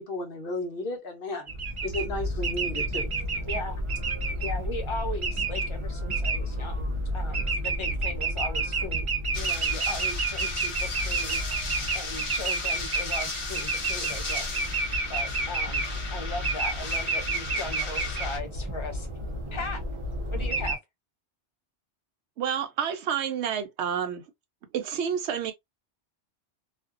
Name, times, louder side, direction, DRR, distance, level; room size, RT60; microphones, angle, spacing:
voice 1, 0.0-1.5 1.8-3.1, left 2 dB, 55° left, 0.9 m, -33 dB
sound 1, 1.5-20.8, right 2 dB, 40° right, 0.4 m, -30 dB
voice 2, 3.4-3.8 4.4-9.1 9.3-11.4 11.9-14.6 15.1-15.8 16.1-19.1 19.5-19.8 20.3-20.8, left 2 dB, 30° left, 0.6 m, -38 dB
sound 2, 9.3-18.4, left 3 dB, 75° left, 1.1 m, -36 dB
voice 3, 22.4-24.2 24.7-25.5, right 8 dB, 75° right, 0.9 m, -29 dB
2.5 x 2.3 x 2.3 m
omnidirectional pair, 1.2 m